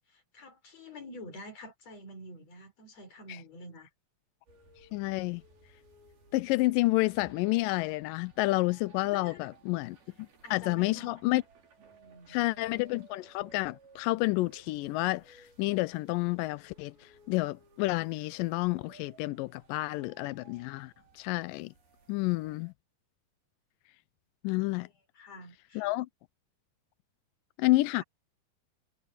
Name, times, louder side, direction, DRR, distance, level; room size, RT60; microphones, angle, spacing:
voice 1, 0.1-3.9 9.0-9.5 10.4-11.2 11.8-12.4 24.8-24.9 25.1-25.9 27.9-28.0, left 1 dB, 45° left, 6.4 m, -48 dB
sound 1, 4.5-22.7, right 3 dB, 80° right, 7.1 m, -59 dB
voice 2, 4.9-5.4 6.3-11.4 12.3-21.7 22.1-22.7 24.4-24.9 25.8-26.1 27.6-28.0, left 21 dB, 80° left, 2.0 m, -30 dB
omnidirectional pair, 4.3 m